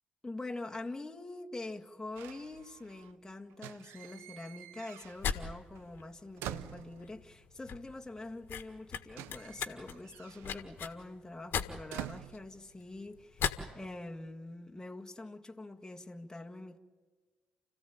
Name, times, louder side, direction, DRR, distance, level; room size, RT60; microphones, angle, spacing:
voice 1, 0.2-16.8, left 2 dB, 15° left, 1.9 m, -45 dB
sound 1, 2.2-3.2 3.5-5.5 5.8-7.4 8.3-8.4 8.6-13.1 13.4-13.9, right 13 dB, 70° right, 0.7 m, -48 dB
sound 2, 5.0-13.7, left 7 dB, 60° left, 1.6 m, -39 dB
29.5 x 15.0 x 8.9 m
figure-of-eight pair, 40°, 4 cm